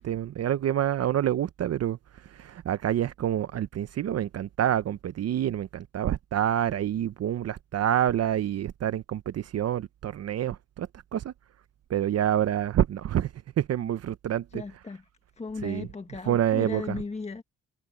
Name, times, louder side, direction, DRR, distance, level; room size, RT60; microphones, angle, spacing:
voice 1, 0.0-2.0 2.3-11.3 11.9-13.3 13.6-14.6 15.6-15.9 16.3-16.8, right 11 dB, 55° right, 0.8 m, -27 dB
voice 2, 14.5-15.0 15.4-17.4, left 3 dB, 20° left, 1.5 m, -36 dB
cardioid pair, 90°, 30 cm